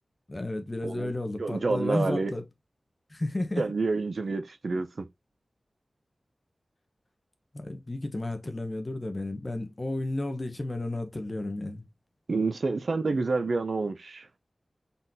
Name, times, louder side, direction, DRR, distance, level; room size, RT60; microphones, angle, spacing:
voice 1, 0.3-2.4 3.1-3.7 7.5-11.8, left 2 dB, 30° left, 0.9 m, -32 dB
voice 2, 1.4-2.3 3.6-5.1 12.3-14.3, right 3 dB, 70° right, 0.6 m, -28 dB
4.1 x 3.9 x 2.6 m
wide cardioid pair, 85°, 0 cm